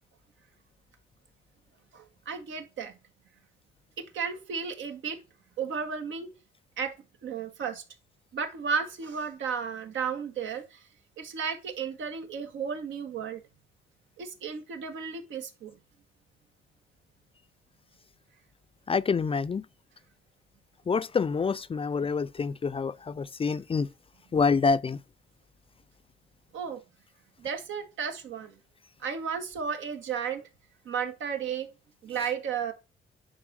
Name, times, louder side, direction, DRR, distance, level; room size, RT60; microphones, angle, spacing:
voice 1, 1.9-3.0 4.0-5.2 5.6-6.3 6.8-6.9 7.2-7.8 8.3-10.9 11.2-13.4 14.2-15.8 26.5-26.8 27.4-28.6 29.0-30.4 30.9-31.7 32.0-32.7, right 6 dB, 75° right, 1.9 m, -33 dB
voice 2, 18.9-19.6 20.9-23.9 24.3-25.0, left 5 dB, 30° left, 0.5 m, -27 dB
10.5 x 4.1 x 6.3 m
cardioid pair, 90°, 20 cm